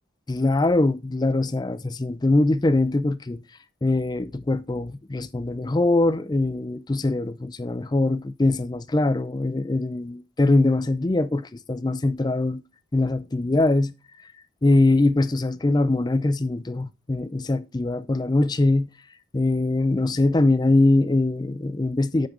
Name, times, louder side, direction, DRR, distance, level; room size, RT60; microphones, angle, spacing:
voice 1, 0.3-3.4 3.8-12.6 12.9-13.9 14.6-18.9 19.3-22.3, left 2 dB, 20° left, 0.4 m, -22 dB
8.5 x 6.0 x 3.7 m
head